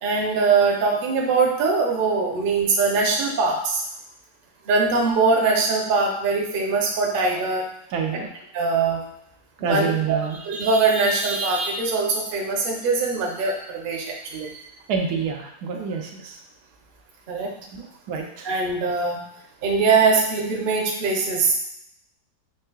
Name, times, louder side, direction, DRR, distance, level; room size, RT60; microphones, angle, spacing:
voice 1, 0.0-3.8 4.7-7.7 8.5-9.0 9.7-14.6 17.3-17.6 18.4-19.2 19.6-21.5, right 4 dB, 50° right, -1 dB, 0.6 m, -22 dB
voice 2, 7.9-8.3 9.6-10.4 14.9-16.4 17.7-18.5, right 6 dB, 80° right, 3 dB, 1.1 m, -27 dB
4.6 x 3.1 x 2.3 m, 0.77 s
omnidirectional pair, 1.7 m